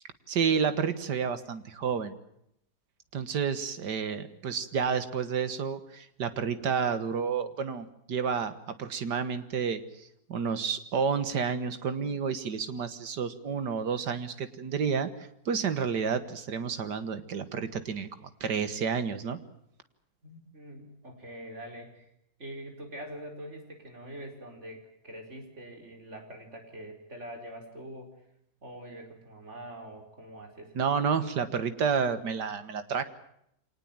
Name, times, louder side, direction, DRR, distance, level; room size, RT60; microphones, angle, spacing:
voice 1, 0.3-2.2 3.1-19.4 30.8-33.0, right 6 dB, 90° right, 11 dB, 2.1 m, -30 dB
voice 2, 20.2-22.1 22.4-28.1 28.6-30.8, right 1 dB, 45° right, 3 dB, 5.1 m, -44 dB
25.0 x 19.0 x 8.9 m, 0.75 s
omnidirectional pair, 1.8 m